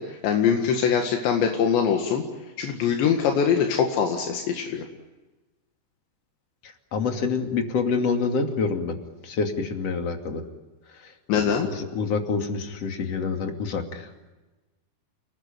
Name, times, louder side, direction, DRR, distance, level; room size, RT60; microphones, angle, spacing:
voice 1, 0.0-2.2 2.6-4.9 11.3-11.7, left 7 dB, 85° left, 3 dB, 4.2 m, -23 dB
voice 2, 6.6-9.0 9.2-10.4 10.9-14.1, left 4 dB, 40° left, 4 dB, 3.1 m, -27 dB
30.0 x 20.0 x 9.2 m, 1.2 s
omnidirectional pair, 5.0 m